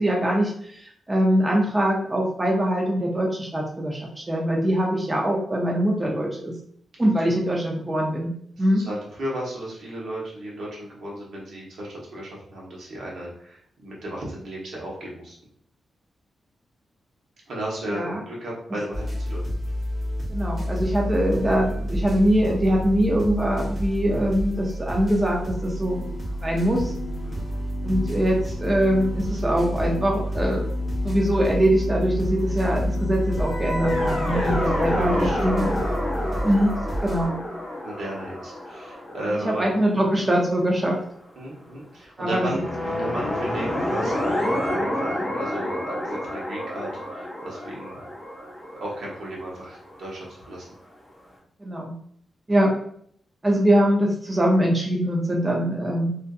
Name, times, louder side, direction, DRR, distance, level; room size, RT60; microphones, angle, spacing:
voice 1, 0.0-4.0 4.3-6.5 7.0-8.3 8.6-8.8 17.9-18.2 20.3-26.1 26.4-26.9 27.8-30.7 31.0-35.8 36.4-36.7 37.0-37.4 39.4-41.0 42.2-42.5 51.6-51.9 52.5-52.7 53.4-56.1, equal, 15° right, -1 dB, 0.4 m, -23 dB
voice 2, 8.6-15.3 17.5-19.4 27.2-27.5 34.3-34.5 34.9-35.5 37.8-39.6 41.4-42.7 43.0-48.0 48.7-50.7, right 1 dB, 70° right, -4 dB, 0.9 m, -34 dB
sound 1, 18.9-37.3, equal, 30° right, 0.8 m, -29 dB
sound 2, 25.5-35.2, left 3 dB, 65° left, 0.3 m, -39 dB
sound 3, 33.3-40.5 42.4-50.2, left 1 dB, 20° left, 1.0 m, -29 dB
2.5 x 2.5 x 2.3 m, 0.64 s
wide cardioid pair, 150°, 0 cm